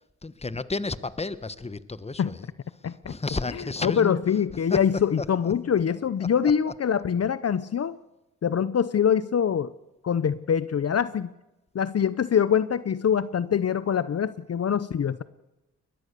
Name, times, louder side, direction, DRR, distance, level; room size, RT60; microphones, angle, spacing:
voice 1, 0.2-2.5 2.8-4.2 4.7-4.8 5.2-5.5, left 3 dB, 20° left, 15 dB, 1.2 m, -32 dB
voice 2, 2.8-3.1 3.8-8.0 8.4-9.7 10.0-11.3 11.7-15.2, left 8 dB, 55° left, 16 dB, 0.8 m, -24 dB
22.0 x 20.0 x 6.8 m, 0.96 s
cardioid pair, 55°, 30 cm